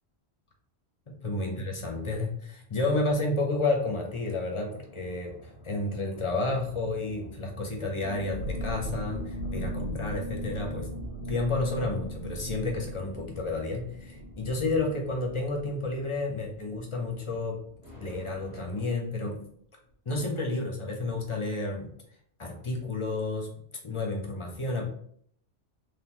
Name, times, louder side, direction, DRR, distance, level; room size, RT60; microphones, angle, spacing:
voice 1, 1.2-10.9 11.3-17.6 18.0-19.4 20.0-21.9 22.4-23.5 23.8-24.9, left 2 dB, 30° left, 1 dB, 0.8 m, -31 dB
sound 1, 3.5-18.9, equal, 85° right, 2.1 m, -51 dB
sound 2, 8.0-17.4 17.7-17.8 18.1-18.4, equal, 90° left, 1.0 m, -38 dB
3.8 x 3.3 x 3.0 m, 0.62 s
omnidirectional pair, 1.1 m